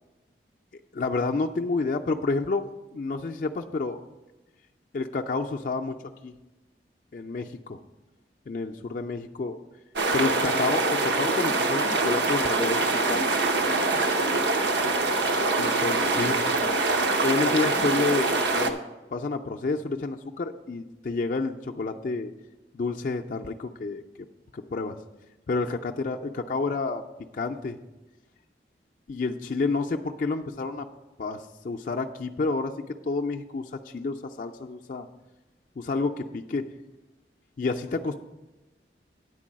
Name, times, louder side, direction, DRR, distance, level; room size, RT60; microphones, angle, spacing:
voice 1, 0.9-4.0 4.9-5.9 6.2-6.3 7.1-7.8 8.5-9.6 10.1-13.4 15.6-18.8 19.1-22.3 22.7-24.0 24.5-25.0 25.5-27.0 27.3-27.8 29.1-30.9 31.2-32.7 33.1-35.1 35.8-36.7 37.6-38.2, left 3 dB, 50° left, 2 dB, 0.4 m, -29 dB
sound 1, 10.0-18.7, right 3 dB, 85° right, 0.8 m, -24 dB
9.7 x 4.6 x 7.3 m, 1.1 s
head